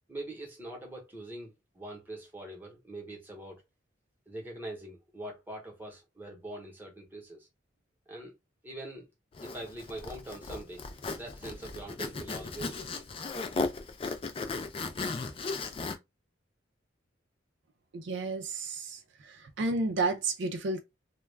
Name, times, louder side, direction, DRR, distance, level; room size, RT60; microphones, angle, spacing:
voice 1, 0.1-3.6 4.3-7.5 8.1-8.3 8.6-9.1 9.4-10.8 11.2-13.1, right 1 dB, 10° right, 0.8 m, -43 dB
Zipper (clothing), 9.3-16.0, left 3 dB, 30° left, 0.3 m, -36 dB
voice 2, 17.9-20.8, right 3 dB, 65° right, 0.4 m, -32 dB
2.3 x 2.2 x 3.2 m
head